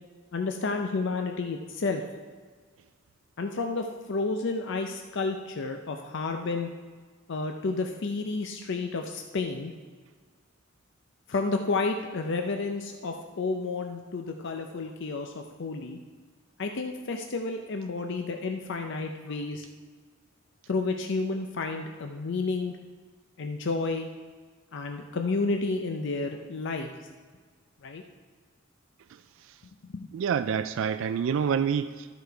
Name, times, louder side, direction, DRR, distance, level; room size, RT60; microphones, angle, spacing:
voice 1, 0.3-2.0 3.4-6.7 7.3-9.7 11.3-16.0 16.6-19.7 20.7-22.8 23.4-24.1 24.7-26.9 27.8-28.0 29.9-30.1, left 3 dB, 60° left, 4 dB, 0.5 m, -31 dB
voice 2, 30.1-32.1, right 7 dB, 65° right, 12 dB, 0.3 m, -27 dB
13.5 x 5.1 x 4.6 m, 1.5 s
head